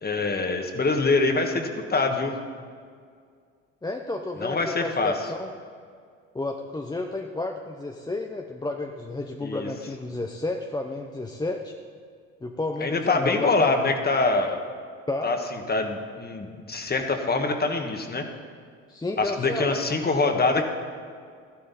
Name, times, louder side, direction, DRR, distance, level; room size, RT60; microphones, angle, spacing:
voice 1, 0.0-2.3 4.4-5.3 9.4-9.7 12.8-14.6 15.2-18.3 19.2-20.6, left 3 dB, 30° left, 5 dB, 1.5 m, -24 dB
voice 2, 3.8-5.5 6.3-11.7 12.4-13.7 15.1-15.4 18.9-19.8 20.6-20.7, left 2 dB, 10° left, 3 dB, 0.7 m, -31 dB
12.5 x 11.5 x 4.2 m, 2.1 s
supercardioid pair, 80°, 34 cm